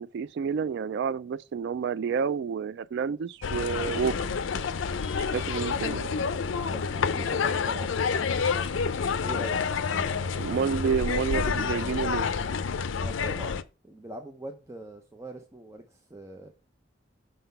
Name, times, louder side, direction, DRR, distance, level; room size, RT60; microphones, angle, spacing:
voice 1, 0.0-4.1 5.2-6.1 10.4-12.3, right 6 dB, 60° right, 0.3 m, -29 dB
sound 1, 3.4-13.6, left 5 dB, 80° left, 0.5 m, -28 dB
voice 2, 6.7-8.7 9.0-9.6 9.9-10.1 10.6-10.7 13.0-13.5 13.8-16.5, right 1 dB, 15° right, 0.6 m, -42 dB
6.5 x 3.9 x 5.4 m
head